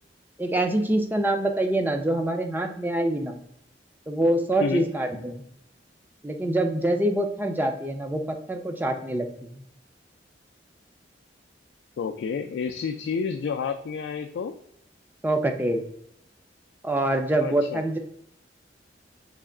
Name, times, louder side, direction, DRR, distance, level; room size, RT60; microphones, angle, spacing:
voice 1, 0.4-3.4 4.1-5.4 6.2-9.6 15.2-15.8 16.8-18.0, right 1 dB, 10° right, 5 dB, 0.4 m, -25 dB
voice 2, 12.0-14.6 17.4-17.8, left 5 dB, 75° left, 5 dB, 0.3 m, -30 dB
3.3 x 3.0 x 3.7 m, 0.73 s
head